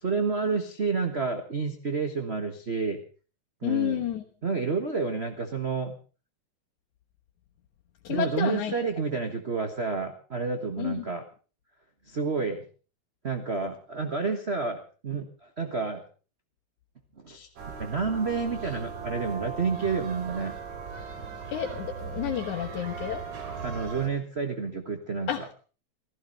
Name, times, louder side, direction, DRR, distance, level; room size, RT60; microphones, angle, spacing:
voice 1, 0.0-3.0 3.6-4.1 4.4-6.0 8.1-11.2 12.1-12.6 13.2-16.0 17.2-17.5 17.8-20.5 23.6-25.5, right 4 dB, 40° right, 6 dB, 0.9 m, -30 dB
voice 2, 3.6-4.2 8.0-8.7 10.8-10.9 21.5-23.2 25.3-25.6, left 10 dB, 85° left, 1 dB, 2.7 m, -30 dB
sound 1, 17.6-24.1, right 5 dB, 75° right, 3.8 m, -38 dB
16.0 x 15.5 x 5.3 m, 0.38 s
omnidirectional pair, 3.3 m